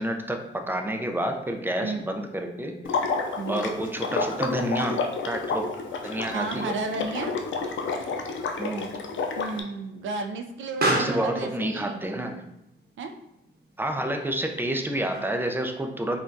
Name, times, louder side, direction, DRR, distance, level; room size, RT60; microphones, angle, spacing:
voice 1, 0.0-2.7 3.5-5.7 6.0-6.7 8.6-8.9 10.8-12.4 13.8-16.2, right 1 dB, 10° right, 4 dB, 0.4 m, -29 dB
Water / Liquid, 2.8-9.6, left 4 dB, 70° left, 0.4 m, -30 dB
voice 2, 6.3-7.3 9.4-12.0 13.0-13.1, right 3 dB, 75° right, 6 dB, 0.4 m, -33 dB
Explosion, 8.4-15.6, right 1 dB, 50° right, 0.9 m, -35 dB
3.6 x 2.3 x 2.6 m, 0.84 s
cardioid pair, 60°, 20 cm